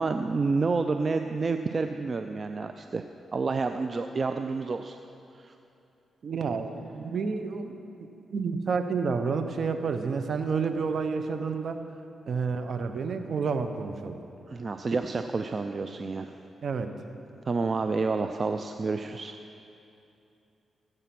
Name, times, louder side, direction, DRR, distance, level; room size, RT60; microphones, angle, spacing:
voice 1, 0.0-3.0 3.3-5.0 5.4-5.5 14.5-16.4 17.4-19.4, right 4 dB, 45° right, 7 dB, 0.5 m, -29 dB
voice 2, 6.2-7.8 8.3-11.8 12.3-14.2 16.6-16.9, right 5 dB, 65° right, 8 dB, 0.9 m, -29 dB
17.0 x 8.0 x 6.0 m, 2.7 s
cardioid pair, 65°, 0 cm